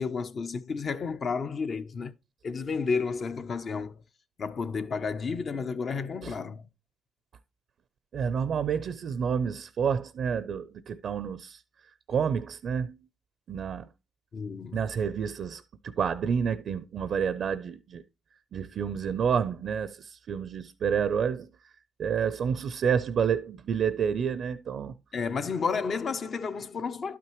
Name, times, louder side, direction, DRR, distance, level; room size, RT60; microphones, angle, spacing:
voice 1, 0.0-2.1 2.4-4.0 4.4-6.6 14.3-14.8 25.1-27.2, left 5 dB, 50° left, 0.7 m, -31 dB
voice 2, 8.1-11.6 12.1-13.0 13.5-13.9 14.7-18.0 18.5-21.5 22.0-24.9, right 7 dB, 60° right, 0.5 m, -29 dB
11.5 x 5.9 x 3.1 m
cardioid pair, 90°, 0 cm